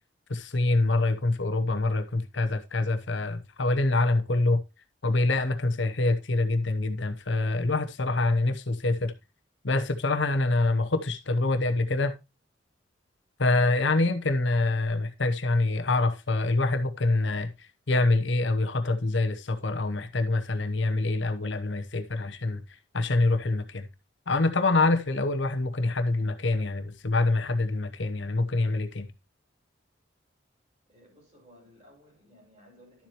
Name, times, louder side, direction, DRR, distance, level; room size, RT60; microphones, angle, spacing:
voice 1, 0.3-4.6 5.0-9.1 9.6-12.1 13.4-22.6 22.9-23.9 24.3-29.1, left 2 dB, 70° left, 1.0 m, -25 dB
voice 2, 30.9-33.1, equal, 30° right, 6.4 m, -57 dB
11.5 x 7.4 x 3.0 m
head